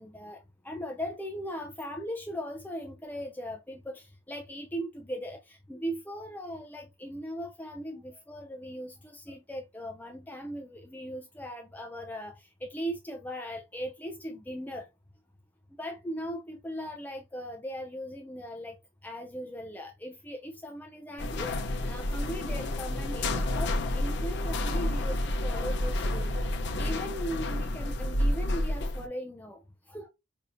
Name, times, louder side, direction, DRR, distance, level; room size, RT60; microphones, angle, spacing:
voice 1, 0.0-14.9 15.8-18.8 19.0-26.3 26.8-30.1, equal, 10° left, 0.4 m, -39 dB
sound 1, 21.2-29.1, left 1 dB, 55° left, 0.6 m, -30 dB
5.4 x 2.8 x 2.5 m
head